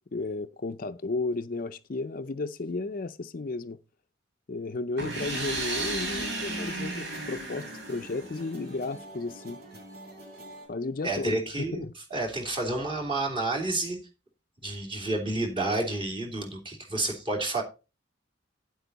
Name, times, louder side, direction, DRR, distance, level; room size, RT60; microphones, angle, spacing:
voice 1, 0.1-3.8 4.5-9.6 10.7-11.9, left 3 dB, 45° left, 0.5 m, -33 dB
sound 1, 5.0-8.7, right 2 dB, 70° right, 3.5 m, -34 dB
sound 2, 5.4-10.7, equal, 55° right, 3.6 m, -47 dB
voice 2, 11.0-11.8 12.1-14.0 14.6-17.6, right 2 dB, 25° right, 2.9 m, -30 dB
9.8 x 8.1 x 4.0 m
head